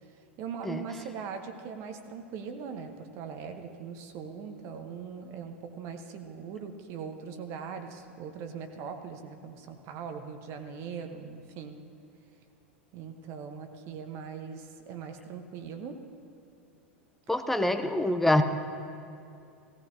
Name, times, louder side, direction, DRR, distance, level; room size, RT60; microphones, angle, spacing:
voice 1, 0.0-11.8 12.9-16.0, right 6 dB, 45° right, 6 dB, 1.0 m, -40 dB
voice 2, 17.3-18.4, left 1 dB, 5° left, 8 dB, 0.6 m, -25 dB
16.5 x 16.0 x 2.8 m, 2.6 s
figure-of-eight pair, 90°, 7 cm